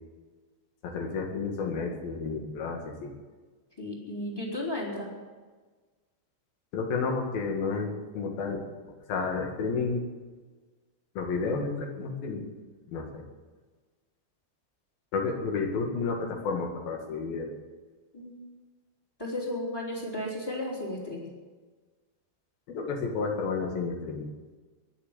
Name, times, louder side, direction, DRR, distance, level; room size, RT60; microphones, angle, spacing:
voice 1, 0.8-3.1 6.7-8.6 9.1-10.0 11.2-12.5 12.9-13.2 15.1-17.5 22.7-24.3, left 4 dB, 65° left, 1 dB, 3.6 m, -31 dB
voice 2, 3.8-5.1 18.1-18.4 19.2-21.3, left 1 dB, 5° left, -2 dB, 3.2 m, -34 dB
21.0 x 7.3 x 8.3 m, 1.3 s
omnidirectional pair, 4.8 m